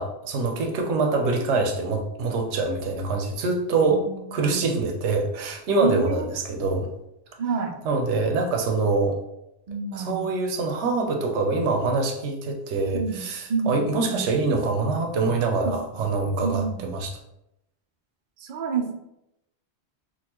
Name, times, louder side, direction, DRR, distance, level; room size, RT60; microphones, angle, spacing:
voice 1, 0.0-4.0 4.3-6.9 7.8-9.2 9.9-17.1, right 3 dB, 80° right, 3 dB, 0.9 m, -25 dB
voice 2, 3.9-4.8 5.8-6.2 7.4-7.8 9.7-10.3 12.9-13.2 13.5-14.3 15.6-16.0 16.4-16.9 18.4-18.9, right 5 dB, 55° right, 3 dB, 0.5 m, -29 dB
3.8 x 2.4 x 2.9 m, 0.85 s
omnidirectional pair, 1.1 m